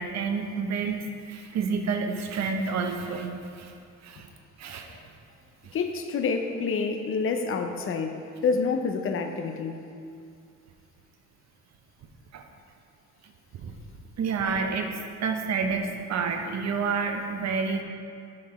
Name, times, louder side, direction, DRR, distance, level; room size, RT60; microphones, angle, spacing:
voice 1, 0.0-3.7 4.0-4.3 4.6-5.0 5.6-5.8 12.3-12.4 13.6-13.7 14.2-17.8, right 5 dB, 60° right, 4 dB, 0.7 m, -29 dB
voice 2, 5.7-8.2 8.4-9.8, left 5 dB, 45° left, 6 dB, 0.6 m, -27 dB
5.9 x 5.1 x 4.2 m, 2.4 s
cardioid pair, 90°, 30 cm